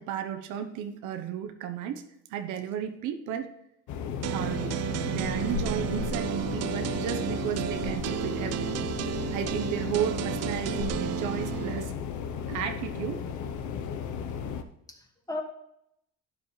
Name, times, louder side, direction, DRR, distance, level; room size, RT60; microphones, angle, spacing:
voice 1, 0.0-2.0 2.3-3.5 4.3-4.8 5.0-8.9 9.3-11.9 12.5-13.2, right 9 dB, 80° right, 8 dB, 1.0 m, -33 dB
sound 1, 3.9-14.6, left 7 dB, 75° left, 0.9 m, -34 dB
sound 2, 4.2-11.8, right 12 dB, 60° right, 0.5 m, -33 dB
voice 2, 14.9-15.4, left 2 dB, 10° left, 2 dB, 2.1 m, -38 dB
12.0 x 9.4 x 3.2 m, 0.79 s
supercardioid pair, 80°, 30 cm